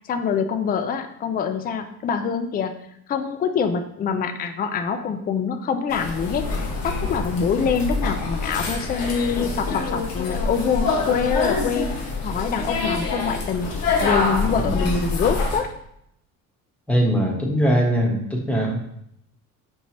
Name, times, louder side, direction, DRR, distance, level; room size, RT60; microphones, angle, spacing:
voice 1, 0.1-2.7 3.1-6.5 6.8-11.9 12.2-13.7 14.0-15.7, left 6 dB, 25° left, 8 dB, 0.4 m, -25 dB
sound 1, 5.9-15.6, left 3 dB, 65° left, 1.1 m, -26 dB
voice 2, 14.6-15.1 16.9-19.0, equal, 5° left, 0 dB, 1.0 m, -22 dB
5.3 x 3.1 x 2.9 m, 0.75 s
cardioid pair, 105°, 38 cm